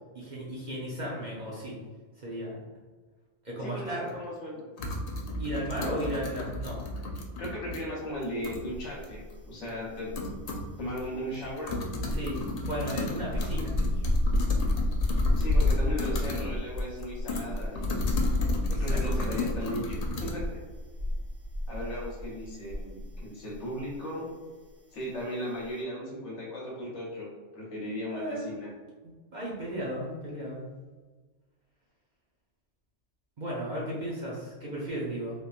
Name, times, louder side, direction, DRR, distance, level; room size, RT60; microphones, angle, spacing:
voice 1, 0.1-1.8 2.2-2.6 3.4-4.1 5.4-6.8 12.1-14.1 18.7-19.0 28.1-28.5 29.3-30.6 33.4-35.4, equal, 45° right, -6 dB, 0.7 m, -35 dB
voice 2, 3.6-4.6 5.8-6.2 7.4-10.1 10.8-11.7 15.4-18.0 18.7-20.6 21.7-24.3 24.9-28.7, equal, 70° left, -4 dB, 1.2 m, -37 dB
sound 1, 3.9-4.0 4.8-7.8 8.2-8.6 9.0-9.1 9.7-9.8 10.2-10.7 11.0-11.1 11.3-16.5 16.8-20.3, left 2 dB, 90° left, 0.3 m, -35 dB
sound 2, 8.7-9.5 9.7-23.3 23.5-23.8, left 1 dB, 80° right, 1.7 m, -29 dB
3.3 x 2.8 x 2.4 m, 1.4 s
omnidirectional pair, 1.3 m